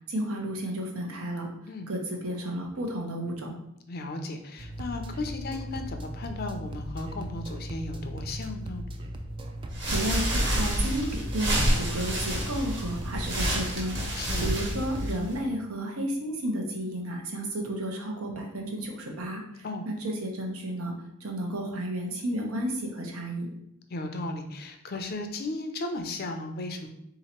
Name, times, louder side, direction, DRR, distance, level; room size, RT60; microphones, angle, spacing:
voice 1, 0.1-1.5 1.9-3.5 9.9-11.1 11.3-14.0 14.4-19.4 19.9-20.9 21.2-23.5, right 1 dB, 85° right, 2 dB, 0.9 m, -32 dB
voice 2, 3.9-8.8 14.1-14.5 19.6-19.9 23.9-26.9, left 2 dB, 45° left, 5 dB, 0.5 m, -35 dB
sound 1, 4.6-15.1, right 1 dB, 25° right, 0.3 m, -37 dB
sound 2, 9.7-15.4, equal, 55° right, 1.4 m, -29 dB
3.8 x 2.9 x 4.3 m, 0.79 s
head